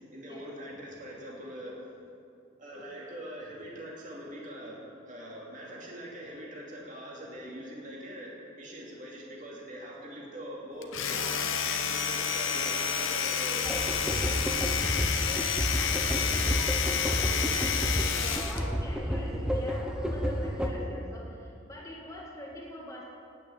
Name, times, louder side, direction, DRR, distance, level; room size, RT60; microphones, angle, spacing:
voice 1, 0.1-1.8 2.6-4.8 5.1-11.2 11.9-14.4, equal, 40° right, -3 dB, 2.5 m, -43 dB
Domestic sounds home sounds, 10.8-18.7, left 7 dB, 85° left, 1.0 m, -29 dB
voice 2, 11.1-11.8 14.8-15.4 16.0-23.0, equal, 15° left, -3 dB, 2.0 m, -44 dB
sound 1, 13.7-20.7, equal, 5° right, 0.8 m, -31 dB
9.4 x 8.6 x 8.8 m, 2.6 s
head